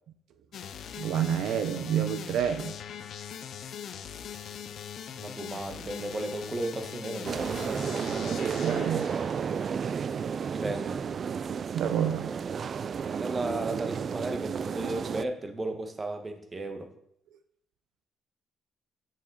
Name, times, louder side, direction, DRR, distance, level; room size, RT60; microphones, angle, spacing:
sound 1, 0.5-10.2, left 8 dB, 65° left, 0.7 m, -41 dB
voice 1, 1.0-2.8 8.3-9.2 11.7-12.3, right 9 dB, 85° right, 9 dB, 0.7 m, -29 dB
voice 2, 5.2-7.5 10.5-11.0 13.0-16.9, right 2 dB, 30° right, 6 dB, 1.4 m, -34 dB
sound 2, 7.2-15.2, right 6 dB, 50° right, 0.3 m, -32 dB
9.2 x 7.3 x 4.0 m, 0.70 s
cardioid pair, 90°, 0 cm